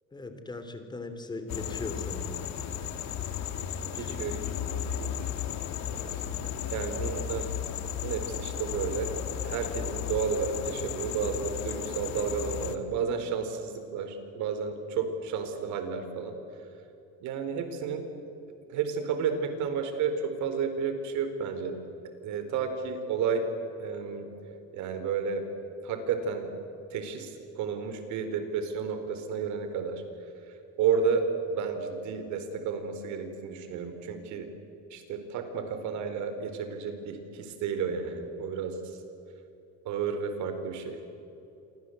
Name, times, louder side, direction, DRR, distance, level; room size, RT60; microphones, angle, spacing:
voice 1, 0.1-2.4 3.3-3.5 3.9-4.4, left 2 dB, 15° left, 8 dB, 3.1 m, -39 dB
sound 1, 1.5-12.8, left 9 dB, 60° left, 2.2 m, -34 dB
voice 2, 4.0-5.1 6.1-6.2 6.7-7.5 8.0-9.1 9.4-16.4 17.2-18.0 18.7-21.7 22.2-23.4 23.8-24.3 24.7-25.4 25.8-26.5 26.9-30.0 30.8-31.2 31.5-34.5 34.9-39.0 39.8-41.0, right 6 dB, 70° right, 7 dB, 4.5 m, -32 dB
28.5 x 24.5 x 8.1 m, 3.0 s
cardioid pair, 150°, 30 cm